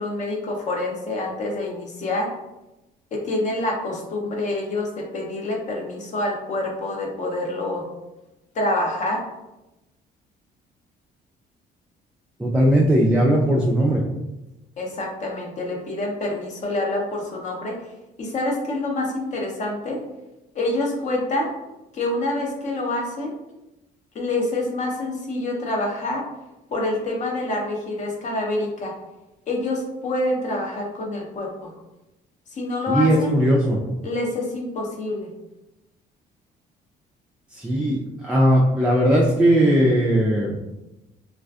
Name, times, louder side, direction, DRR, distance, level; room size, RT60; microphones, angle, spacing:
voice 1, 0.0-2.3 3.1-7.9 8.5-9.2 14.8-17.8 18.2-20.0 20.5-21.5 21.9-23.3 24.1-26.2 26.7-28.9 29.5-31.7 32.5-33.4 34.0-35.3, left 2 dB, 45° left, 0 dB, 0.6 m, -26 dB
voice 2, 12.4-14.0 32.9-33.8 37.5-40.5, equal, 5° right, -3 dB, 0.3 m, -18 dB
2.4 x 2.4 x 2.3 m, 0.98 s
cardioid pair, 110°, 17 cm